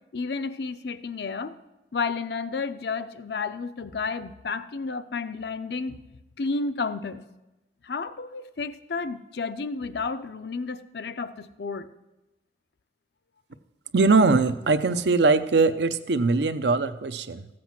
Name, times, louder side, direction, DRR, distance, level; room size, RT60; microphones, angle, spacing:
voice 1, 0.1-1.5 1.9-6.0 6.4-7.2 7.8-11.9, left 4 dB, 70° left, 11 dB, 0.6 m, -31 dB
voice 2, 13.9-17.5, right 3 dB, 80° right, 10 dB, 0.6 m, -21 dB
14.0 x 7.7 x 5.9 m, 1.0 s
head